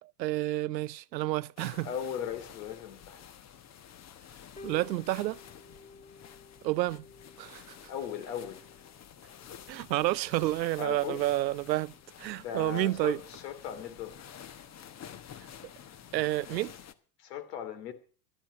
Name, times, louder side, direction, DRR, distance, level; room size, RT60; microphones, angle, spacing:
voice 1, 0.0-1.9 4.6-5.4 6.6-7.0 7.4-7.8 9.7-11.9 12.2-13.2 16.1-16.7, right 16 dB, 80° right, 0.6 m, -30 dB
sound 1, 1.6-16.9, left 9 dB, 30° left, 1.2 m, -50 dB
voice 2, 1.8-3.2 7.9-8.7 10.8-11.3 12.3-14.2 17.2-17.9, left 8 dB, 70° left, 2.9 m, -38 dB
sound 2, 4.5-12.6 13.2-13.4, left 3 dB, 15° left, 2.4 m, -55 dB
12.5 x 12.0 x 6.3 m
hypercardioid pair, 90°, 50 cm